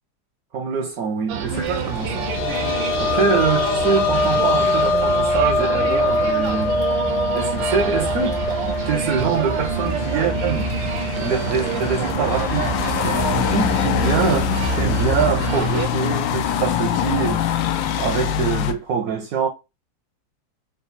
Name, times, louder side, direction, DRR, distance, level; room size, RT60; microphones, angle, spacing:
voice 1, 0.5-2.6 3.0-6.8 7.3-8.4 8.9-10.7 11.2-17.4 18.0-19.5, right 6 dB, 65° right, 0.9 m, -24 dB
sound 1, 1.3-15.9, right 7 dB, 85° right, 1.3 m, -28 dB
sound 2, 1.5-18.7, left 8 dB, 85° left, 1.3 m, -26 dB
sound 3, 1.7-13.2 13.5-13.6 15.2-15.3, left 2 dB, 65° left, 1.1 m, -24 dB
4.0 x 2.4 x 4.0 m
omnidirectional pair, 2.0 m